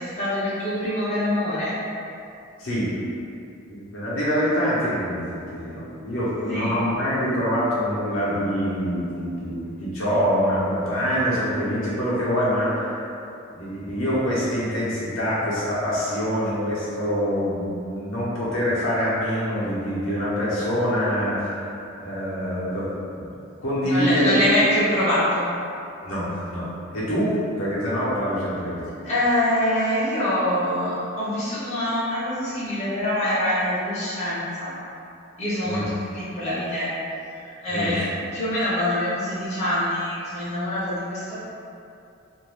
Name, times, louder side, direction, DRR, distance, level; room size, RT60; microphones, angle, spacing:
voice 1, 0.0-1.8 6.5-6.8 23.8-25.5 29.0-34.7 35.4-35.8 36.1-36.9 37.4-41.4, left 1 dB, 30° left, -11 dB, 0.7 m, -24 dB
voice 2, 2.6-2.9 3.7-13.1 13.5-21.7 22.0-22.9 23.2-23.3 23.6-24.6 26.0-28.8 35.6-35.8 37.7-38.1, equal, 75° left, -9 dB, 0.8 m, -25 dB
2.6 x 2.3 x 3.2 m, 2.6 s
head